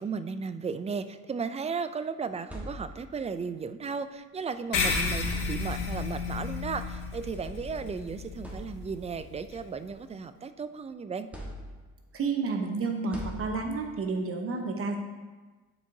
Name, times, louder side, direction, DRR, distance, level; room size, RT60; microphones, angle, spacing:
voice 1, 0.0-11.3, right 5 dB, 20° right, 11 dB, 0.3 m, -35 dB
sound 1, 2.2-3.3 4.6-4.7 5.2-6.1 7.2-7.3 7.9-8.0 8.4-9.2 9.7-10.7 11.3-12.1 13.1-14.0, equal, 5° right, 1.3 m, -43 dB
sound 2, 4.7-9.6, left 4 dB, 85° left, 1.0 m, -32 dB
voice 2, 12.1-15.0, right 4 dB, 50° right, 3 dB, 0.9 m, -30 dB
9.6 x 4.7 x 2.7 m, 1.3 s
cardioid pair, 90°, 30 cm